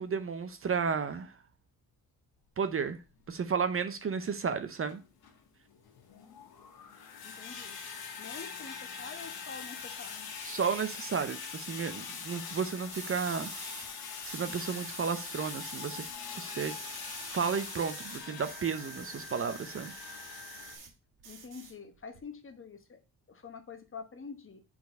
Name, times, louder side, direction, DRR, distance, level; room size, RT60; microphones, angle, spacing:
voice 1, 0.0-1.3 2.6-3.0 3.3-5.0 10.5-13.5 14.2-16.1 16.3-16.8 17.3-19.9, right 6 dB, 40° right, 0.6 m, -33 dB
sound 1, 2.9-3.0 3.8-3.9 4.8-20.8, left 6 dB, 85° left, 1.4 m, -43 dB
voice 2, 7.2-7.8 8.2-10.3 21.2-23.0 23.3-24.6, left 5 dB, 35° left, 1.1 m, -46 dB
sound 2, 12.9-13.9 14.2-16.1 16.4-20.9 21.2-22.2, right 5 dB, 85° right, 1.6 m, -47 dB
4.6 x 4.2 x 5.2 m
cardioid pair, 80°, 36 cm